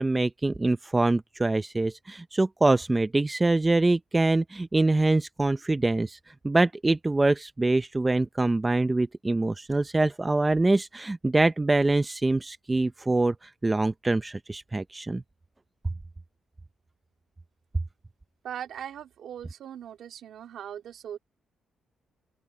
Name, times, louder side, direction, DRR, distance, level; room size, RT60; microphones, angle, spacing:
voice 1, 0.0-6.2 6.4-15.2, right 2 dB, 15° right, 0.6 m, -24 dB
voice 2, 18.4-21.2, right 9 dB, 65° right, 2.2 m, -39 dB
open air
cardioid pair, 140°, 0 cm